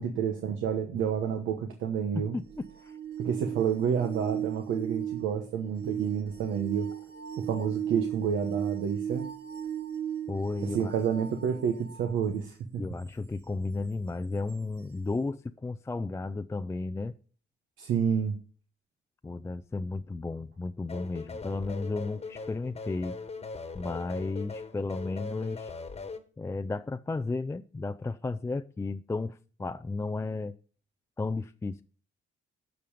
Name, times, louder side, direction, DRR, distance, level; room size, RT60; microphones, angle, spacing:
voice 1, 0.0-2.4 3.2-6.9 7.4-9.3 10.6-12.8 17.8-18.3, right 7 dB, 80° right, 4 dB, 1.1 m, -29 dB
voice 2, 2.1-3.0 10.3-10.9 12.8-17.1 19.2-23.2 23.7-25.7 26.4-30.5 31.2-31.8, left 3 dB, 15° left, 10 dB, 0.4 m, -33 dB
sound 1, 2.4-12.2 14.5-14.6, right 9 dB, 55° right, 1.7 m, -36 dB
sound 2, 20.9-26.2, left 4 dB, 30° left, 1.3 m, -40 dB
12.5 x 5.3 x 5.0 m, 0.41 s
cardioid pair, 90°, 20 cm